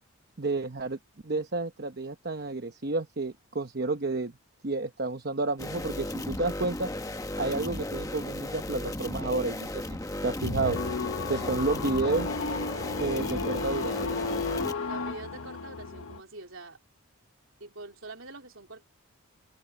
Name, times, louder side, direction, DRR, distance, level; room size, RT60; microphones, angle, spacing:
voice 1, 0.4-1.0 1.2-4.3 4.6-6.9 7.4-10.0 10.2-10.8 11.3-12.4 13.0-14.2, right 3 dB, 45° right, 1.0 m, -30 dB
sound 1, 5.6-14.7, left 1 dB, 15° left, 1.0 m, -35 dB
sound 2, 10.4-16.2, left 4 dB, 75° left, 1.2 m, -33 dB
voice 2, 14.9-16.8 17.6-18.8, right 2 dB, 60° right, 3.7 m, -45 dB
open air
head